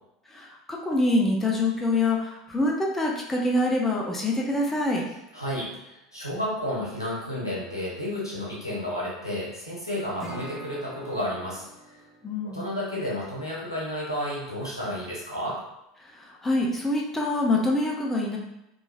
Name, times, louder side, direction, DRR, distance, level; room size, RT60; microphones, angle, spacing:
voice 1, 0.3-5.0 12.2-12.7 16.0-18.4, left 2 dB, 10° left, -2 dB, 0.5 m, -25 dB
voice 2, 5.3-12.0 12.4-15.6, left 1 dB, 90° left, -7 dB, 0.8 m, -32 dB
Acoustic guitar / Strum, 10.2-13.4, right 2 dB, 5° right, 0.9 m, -44 dB
3.0 x 2.3 x 2.3 m, 0.87 s
figure-of-eight pair, 75°, 2 cm